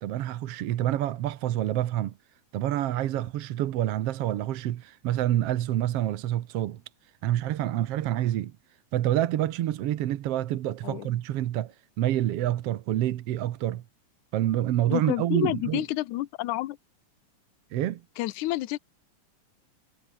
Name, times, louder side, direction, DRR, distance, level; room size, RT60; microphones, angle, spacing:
voice 1, 0.0-2.1 2.5-6.8 7.2-8.5 8.9-13.8 14.3-15.8 17.7-18.0, right 13 dB, 65° right, 1.7 m, -27 dB
voice 2, 14.9-16.8 18.2-18.8, left 16 dB, 80° left, 2.3 m, -29 dB
omnidirectional pair, 3.5 m